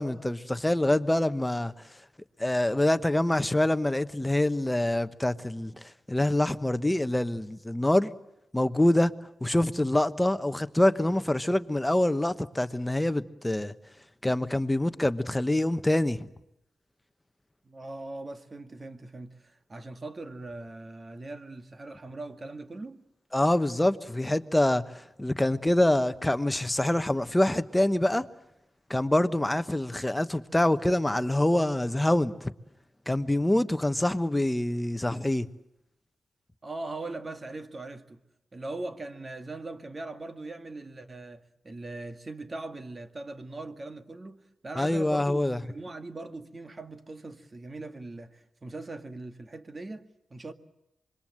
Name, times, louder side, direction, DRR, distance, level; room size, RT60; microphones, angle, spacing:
voice 1, 0.0-1.7 2.4-8.1 8.5-9.1 9.4-13.7 14.2-16.3 23.3-24.9 25.2-28.3 28.9-32.5 33.1-35.5 44.8-45.6, left 1 dB, 10° left, 1.2 m, -25 dB
voice 2, 17.6-23.0 36.6-38.2 38.5-50.5, right 2 dB, 35° right, 2.0 m, -40 dB
26.0 x 22.5 x 7.8 m
cardioid pair, 70°, 0 cm